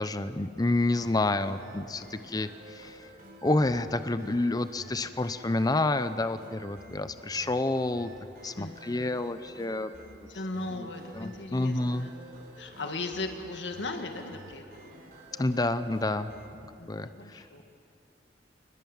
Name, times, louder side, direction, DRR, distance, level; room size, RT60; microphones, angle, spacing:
voice 1, 0.0-3.1 3.4-8.1 8.4-9.9 10.8-10.9 11.1-12.1 15.4-16.3 16.9-17.4, left 2 dB, 20° left, 12 dB, 0.7 m, -29 dB
sound 1, 0.6-16.5, right 1 dB, 55° right, 3.9 m, -50 dB
voice 2, 8.6-9.4 10.3-12.1 12.6-14.9 16.8-17.6, left 2 dB, 80° left, 5 dB, 1.9 m, -38 dB
29.0 x 20.5 x 7.3 m, 2.7 s
head